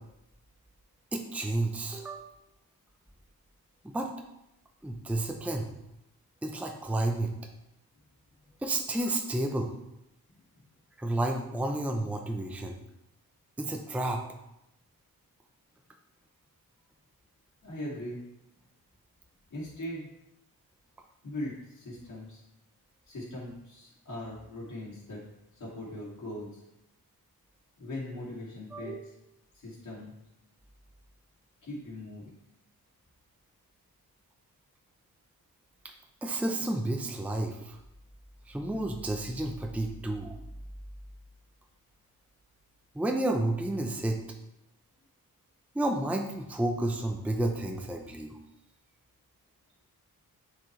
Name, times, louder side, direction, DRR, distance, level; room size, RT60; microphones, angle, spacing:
voice 1, 1.1-2.3 3.8-4.1 4.8-5.7 6.4-7.3 8.6-9.7 11.0-12.8 13.6-14.2 28.7-29.1 36.2-37.8 38.5-40.4 42.9-44.2 45.7-48.4, right 1 dB, 5° right, 2 dB, 0.7 m, -31 dB
voice 2, 17.6-18.2 19.5-20.1 21.2-22.4 23.1-25.2 25.5-26.6 27.8-29.1 29.5-30.1 31.6-32.3, left 1 dB, 55° left, -7 dB, 2.5 m, -40 dB
7.8 x 4.9 x 3.2 m, 0.86 s
cardioid pair, 75°, 38 cm